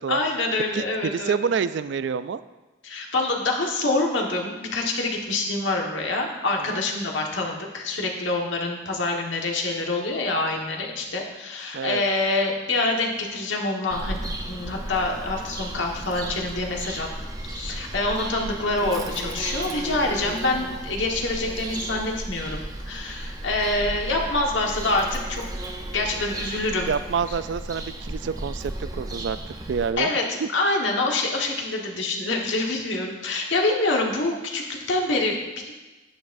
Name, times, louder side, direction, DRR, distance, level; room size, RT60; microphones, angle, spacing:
voice 1, 0.1-1.3 2.8-14.2 14.5-17.1 17.5-25.4 25.9-26.9 30.0-35.7, left 2 dB, 80° left, 0 dB, 1.4 m, -26 dB
voice 2, 0.7-2.4 6.7-6.8 11.7-12.0 26.9-29.4 29.7-30.1, right 6 dB, 70° right, 14 dB, 0.3 m, -27 dB
Bird vocalization bird call bird song, 13.9-29.9, right 1 dB, 20° right, 0.7 m, -34 dB
11.0 x 9.5 x 2.6 m, 1.1 s
head